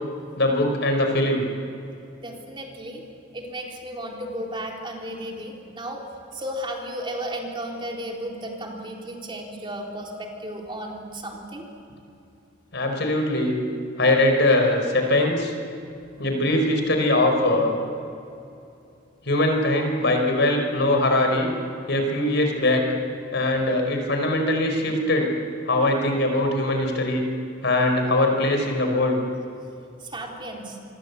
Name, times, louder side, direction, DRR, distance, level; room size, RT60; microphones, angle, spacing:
voice 1, 0.4-1.5 12.7-13.6 14.0-15.5 16.2-17.7 19.2-21.5 21.9-22.8 23.3-25.3 25.7-27.2 27.6-29.2, left 1 dB, 65° left, 4 dB, 4.8 m, -21 dB
voice 2, 2.2-3.0 3.3-6.0 6.3-11.6 16.2-16.4 30.0-30.8, right 1 dB, 25° right, 0 dB, 3.8 m, -34 dB
27.5 x 24.0 x 8.4 m, 2.6 s
head